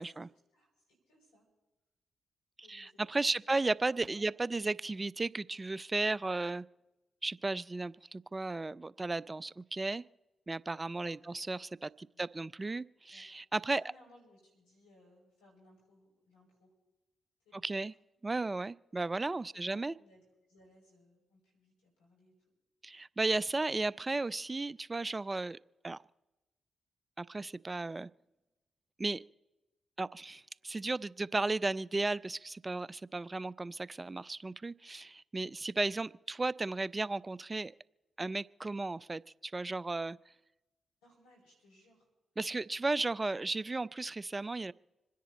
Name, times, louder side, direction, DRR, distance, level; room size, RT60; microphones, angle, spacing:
voice 1, 0.0-1.5 2.6-4.5 11.0-11.4 12.1-12.2 13.1-13.3 13.7-16.7 17.4-17.9 19.5-22.3 41.0-42.1 43.1-43.2, left 1 dB, 90° left, -3 dB, 5.7 m, -64 dB
voice 2, 2.7-6.6 7.2-10.0 10.5-13.8 17.6-17.9 18.2-20.0 22.8-25.6 25.8-26.0 27.2-28.1 29.0-29.2 30.0-37.7 38.2-40.2 42.4-44.7, right 3 dB, 30° right, 21 dB, 0.4 m, -34 dB
27.0 x 10.5 x 4.1 m, 1.0 s
hypercardioid pair, 40°, 0 cm